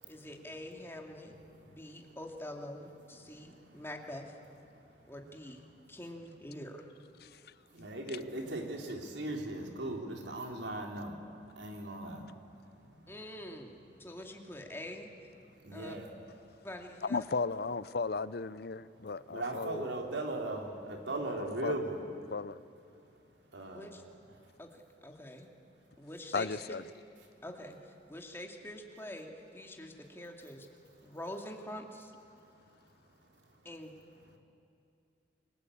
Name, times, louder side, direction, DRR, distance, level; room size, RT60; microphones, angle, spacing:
voice 1, 0.1-1.3 1.7-4.4 5.1-6.9 13.1-15.1 15.7-16.0 16.6-17.2 23.7-24.0 24.6-25.5 26.0-26.8 27.4-30.7 31.0-32.1 33.6-33.9, left 1 dB, 15° left, 2 dB, 2.4 m, -45 dB
voice 2, 1.7-2.1 3.3-3.8 4.7-4.8 7.7-11.2 11.6-12.5 12.9-13.1 15.6-16.1 19.3-22.0 23.5-23.9, right 2 dB, 80° right, 2 dB, 3.7 m, -39 dB
voice 3, 17.1-19.8 21.6-21.7 22.3-22.6 26.3-26.8, left 4 dB, 60° left, 17 dB, 0.6 m, -35 dB
29.0 x 22.0 x 8.6 m, 2.6 s
head